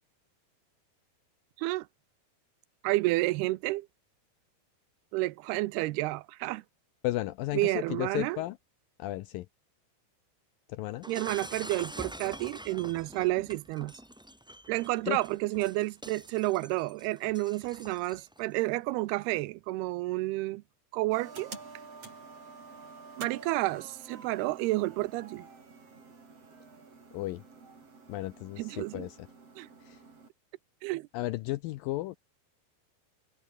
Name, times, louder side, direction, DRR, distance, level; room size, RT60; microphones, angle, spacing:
voice 1, 2.8-3.9 5.1-6.6 7.5-8.4 11.1-13.9 14.7-20.6 20.9-21.6 23.2-25.5 28.6-29.1 29.6-29.7 30.8-31.1, right 20 dB, 90° right, 2.7 m, -30 dB
voice 2, 7.0-8.6 9.0-9.5 10.7-11.1 15.1-15.2 27.1-27.4 28.1-29.3 29.8-30.0 31.1-32.2, left 17 dB, 80° left, 2.1 m, -34 dB
Shatter, 11.0-18.4, equal, 5° right, 0.7 m, -46 dB
sound 1, 21.1-30.3, right 4 dB, 40° right, 5.5 m, -49 dB
omnidirectional pair, 4.6 m